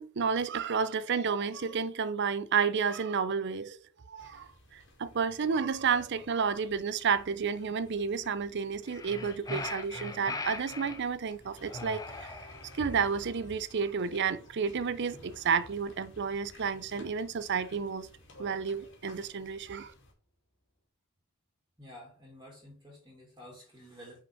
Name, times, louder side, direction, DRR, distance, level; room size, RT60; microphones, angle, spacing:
voice 1, 0.0-3.8 4.1-12.3 12.7-18.1 18.4-19.9, right 6 dB, 50° right, 0.5 m, -31 dB
sound 1, 4.2-20.1, left 1 dB, 55° left, 2.2 m, -57 dB
sound 2, 8.8-11.0 11.7-12.9, left 3 dB, 15° left, 0.7 m, -39 dB
sound 3, 11.5-20.1, equal, 75° left, 2.2 m, -57 dB
voice 2, 21.8-24.2, equal, 15° right, 2.4 m, -51 dB
5.9 x 5.2 x 4.6 m
head